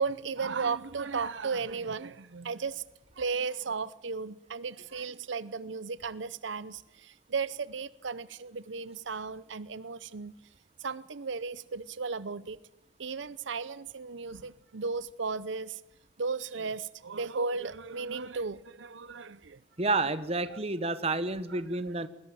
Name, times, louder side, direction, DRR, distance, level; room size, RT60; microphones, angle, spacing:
voice 1, 0.0-2.8 3.2-10.3 10.8-12.6 13.0-15.8 16.2-19.6 19.9-20.1 20.5-20.6 20.8-20.9 21.5-22.1, right 4 dB, 80° right, 0.7 m, -35 dB
voice 2, 19.8-22.1, right 2 dB, 30° right, 1.2 m, -30 dB
20.5 x 18.0 x 9.0 m
head